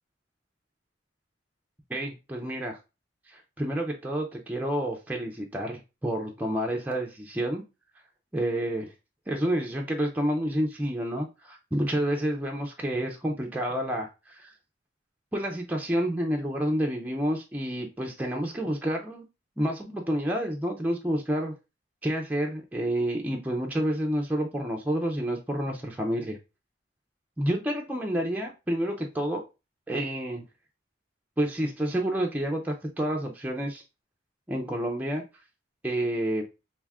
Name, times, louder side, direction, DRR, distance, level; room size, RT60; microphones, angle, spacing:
voice 1, 1.9-2.8 3.3-7.6 8.3-8.9 9.3-14.5 15.3-19.2 19.6-21.5 22.0-26.4 27.4-29.4 29.9-30.4 31.4-33.8 34.5-35.2 35.8-36.4, right 1 dB, 10° right, 0.4 m, -29 dB
2.6 x 2.4 x 3.3 m
head